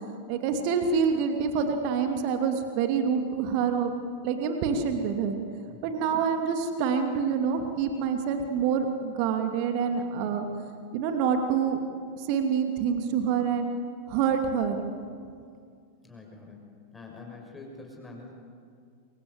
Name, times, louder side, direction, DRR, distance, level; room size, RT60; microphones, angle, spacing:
voice 1, 0.3-3.9 4.2-5.4 5.8-10.4 10.9-11.8 12.2-13.7 14.1-14.8, right 6 dB, 45° right, 5 dB, 2.6 m, -26 dB
voice 2, 16.0-16.7 16.9-18.3, left 3 dB, 10° left, 0 dB, 6.1 m, -45 dB
27.5 x 24.0 x 8.1 m, 2.2 s
figure-of-eight pair, 90°, 0 cm